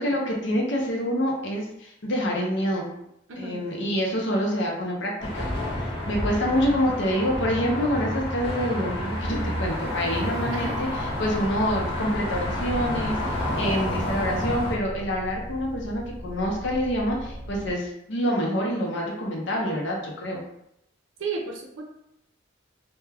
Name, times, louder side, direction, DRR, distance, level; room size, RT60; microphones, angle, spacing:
voice 1, 0.0-2.9 3.4-5.5 6.1-20.4, equal, 65° left, -1 dB, 0.6 m, -27 dB
voice 2, 3.3-3.6 10.5-10.7 21.2-21.8, right 4 dB, 75° right, 0 dB, 0.5 m, -33 dB
sound 1, 5.2-14.8, left 1 dB, 25° left, 0.7 m, -29 dB
sound 2, 10.6-17.7, equal, 20° right, 0.9 m, -38 dB
2.2 x 2.1 x 3.3 m, 0.78 s
head